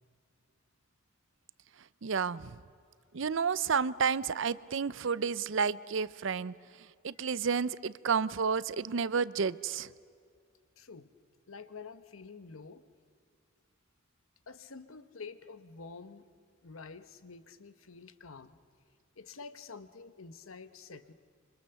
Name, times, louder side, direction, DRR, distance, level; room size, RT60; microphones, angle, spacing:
voice 1, 2.0-2.5 3.1-6.5 7.0-9.9, right 6 dB, 65° right, 18 dB, 0.6 m, -31 dB
voice 2, 10.8-11.1 11.5-12.9 14.5-16.3 16.6-18.6 19.1-21.1, left 4 dB, 90° left, 12 dB, 1.1 m, -48 dB
26.5 x 25.0 x 6.9 m, 2.3 s
head